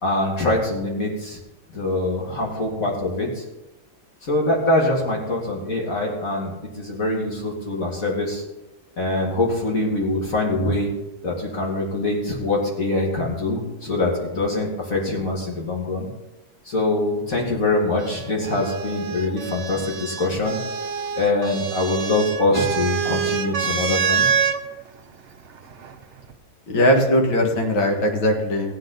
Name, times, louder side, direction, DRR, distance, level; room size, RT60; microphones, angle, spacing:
voice 1, 0.0-1.4 1.7-3.4 4.2-8.4 9.0-10.9 11.2-16.1 16.7-20.6 21.2-24.3, left 2 dB, 45° left, -1 dB, 2.4 m, -24 dB
sound 1, 18.0-24.6 25.7-26.3, right 6 dB, 55° right, 0.8 m, -26 dB
voice 2, 26.7-28.7, equal, 75° left, 2 dB, 2.5 m, -19 dB
15.5 x 9.4 x 4.0 m, 0.98 s
omnidirectional pair, 2.1 m